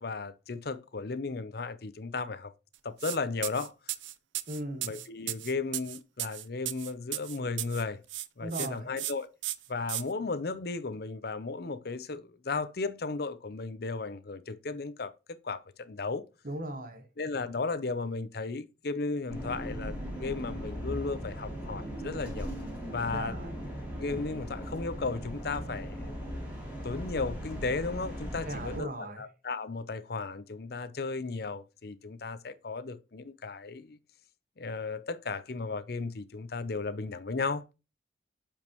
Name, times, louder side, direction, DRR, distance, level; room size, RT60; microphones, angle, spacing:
voice 1, 0.0-2.5 2.8-3.7 4.8-8.0 8.4-9.3 9.7-16.2 17.2-22.5 22.9-23.4 24.0-26.1 26.8-34.0 34.6-37.6, left 3 dB, 55° left, 0.7 m, -35 dB
sound 1, 3.0-3.2 3.4-7.8 8.1-8.7 9.0-9.1 9.4-10.0, right 15 dB, 85° right, 0.5 m, -35 dB
voice 2, 4.5-5.0 8.4-8.9 16.4-17.1 23.1-23.5 28.5-29.2, right 1 dB, 50° right, 1.2 m, -38 dB
sound 2, 19.3-28.8, equal, 10° right, 2.8 m, -38 dB
8.6 x 5.1 x 3.0 m
head